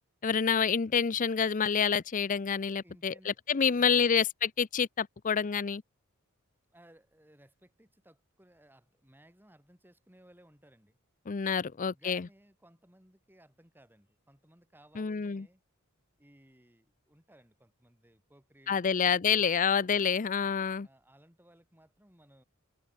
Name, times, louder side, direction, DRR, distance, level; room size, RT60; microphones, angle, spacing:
voice 1, 0.2-5.8 11.3-12.3 15.0-15.4 18.7-20.9, left 6 dB, 35° left, 0.5 m, -28 dB
voice 2, 2.8-4.1 6.7-11.0 11.6-15.6 16.2-19.9 20.8-22.4, right 1 dB, 10° right, 6.2 m, -61 dB
head